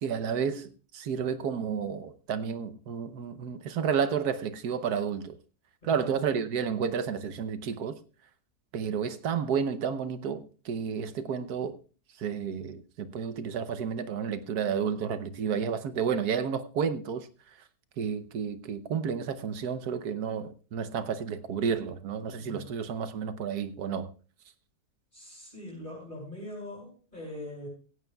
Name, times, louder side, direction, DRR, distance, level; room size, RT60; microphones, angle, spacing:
voice 1, 0.0-5.4 5.8-8.0 8.7-11.8 12.2-17.3 18.0-24.1, right 7 dB, 75° right, 1.4 m, -31 dB
voice 2, 5.8-6.2 22.4-22.6 25.1-27.7, left 1 dB, 30° left, 6.2 m, -42 dB
16.5 x 15.5 x 2.3 m
omnidirectional pair, 1.7 m